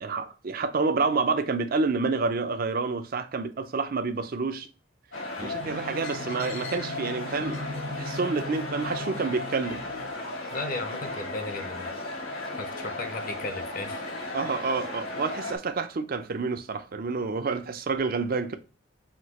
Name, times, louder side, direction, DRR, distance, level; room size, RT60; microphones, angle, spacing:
voice 1, 0.0-4.7 5.4-7.6 7.9-9.8 14.3-18.6, right 4 dB, 45° right, 0.4 m, -28 dB
sound 1, 5.1-15.6, left 2 dB, 85° left, 2.1 m, -35 dB
sound 2, 5.6-10.1, equal, 60° right, 0.8 m, -39 dB
voice 2, 10.5-11.9 12.6-14.0, left 2 dB, 40° left, 0.6 m, -35 dB
5.9 x 2.7 x 2.9 m
head